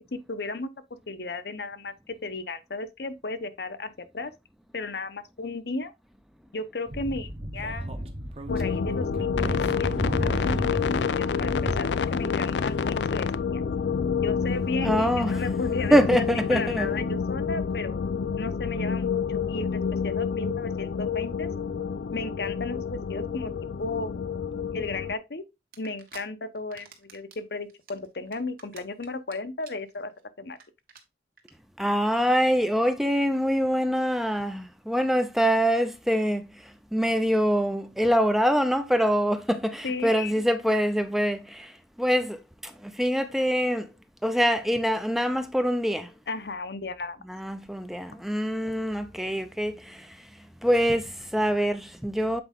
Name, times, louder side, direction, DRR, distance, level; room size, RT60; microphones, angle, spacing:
voice 1, 0.0-4.3 4.7-5.9 6.5-8.1 8.5-13.6 14.2-16.2 16.5-18.0 18.4-21.5 22.1-23.5 23.8-24.4 24.7-25.4 25.8-30.1 30.4-30.6 39.8-40.3 46.3-47.2, left 3 dB, 70° left, 0.8 m, -35 dB
Speech / Wind, 6.9-11.8, right 1 dB, 35° right, 1.0 m, -33 dB
sound 1, 8.5-25.1, left 6 dB, 85° left, 0.4 m, -28 dB
voice 2, 14.8-15.4 15.9-16.9 31.8-36.5 36.9-41.7 42.0-42.4 42.9-43.9 44.2-46.1 47.3-50.1 50.6-52.4, equal, ahead, 0.5 m, -24 dB
sound 2, 25.7-26.2 26.6-27.4 27.7-29.3 29.6-29.9 30.2-30.3 30.5-30.6 30.9-31.0 31.4-31.5, right 6 dB, 55° right, 1.4 m, -48 dB
7.8 x 4.6 x 3.5 m
head